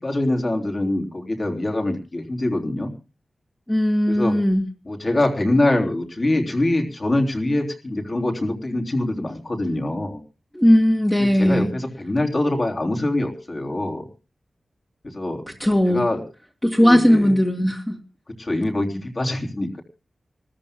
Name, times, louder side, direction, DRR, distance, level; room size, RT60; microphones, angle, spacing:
voice 1, 0.0-2.9 4.1-4.3 4.9-10.2 11.2-14.1 15.0-15.4 15.9-16.2 16.8-17.3 18.4-19.8, left 1 dB, 35° left, 3 dB, 3.5 m, -24 dB
voice 2, 3.7-4.7 10.5-11.7 15.6-16.1 16.6-18.0, equal, 15° left, -2 dB, 2.1 m, -18 dB
28.0 x 14.0 x 2.2 m, 0.32 s
wide cardioid pair, 110°, 0 cm